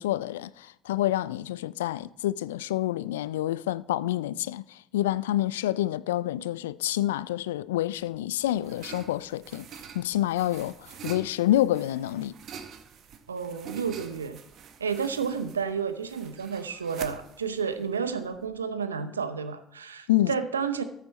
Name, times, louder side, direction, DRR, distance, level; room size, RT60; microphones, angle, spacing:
voice 1, 0.0-9.7 9.9-12.3 20.1-20.3, left 14 dB, 75° left, 0.3 m, -28 dB
sound 1, 8.0-18.6, right 7 dB, 55° right, 1.1 m, -46 dB
voice 2, 13.3-14.4 14.8-20.8, right 6 dB, 85° right, 0.7 m, -31 dB
14.0 x 6.8 x 4.2 m
figure-of-eight pair, 55°, 0 cm